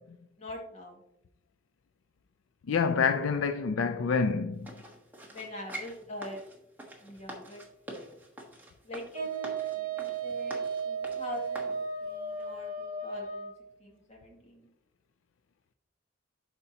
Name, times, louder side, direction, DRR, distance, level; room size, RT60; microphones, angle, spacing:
voice 1, 0.4-1.0 5.3-6.4 7.0-7.6 8.8-11.7 12.0-13.5 13.8-14.7, left 1 dB, 35° left, 2.0 m, -43 dB
voice 2, 2.7-4.7, left 5 dB, 75° left, 0.4 m, -27 dB
sound 1, 4.6-11.8 12.3-12.4, right 1 dB, 10° right, 1.3 m, -45 dB
Wind instrument woodwind instrument, 9.1-13.5, right 5 dB, 45° right, 1.8 m, -35 dB
12.0 x 4.4 x 2.8 m
head